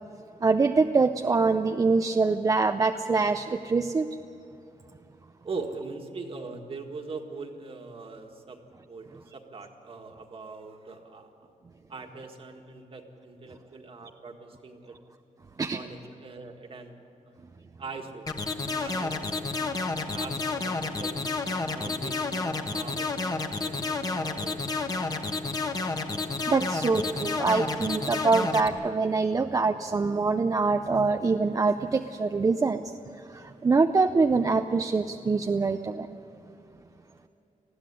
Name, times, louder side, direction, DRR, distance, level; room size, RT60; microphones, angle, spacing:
voice 1, 0.4-4.1 15.6-15.8 26.5-32.8 33.3-36.1, right 4 dB, 25° right, 7 dB, 0.5 m, -24 dB
voice 2, 5.4-8.6 8.9-11.3 11.9-14.9 15.7-17.0 17.8-19.6 20.1-21.2 21.7-24.7, right 3 dB, 45° right, 4 dB, 1.8 m, -41 dB
sound 1, 18.3-28.7, left 3 dB, 30° left, 1.2 m, -30 dB
20.0 x 15.0 x 9.9 m, 2.8 s
wide cardioid pair, 175°, 14 cm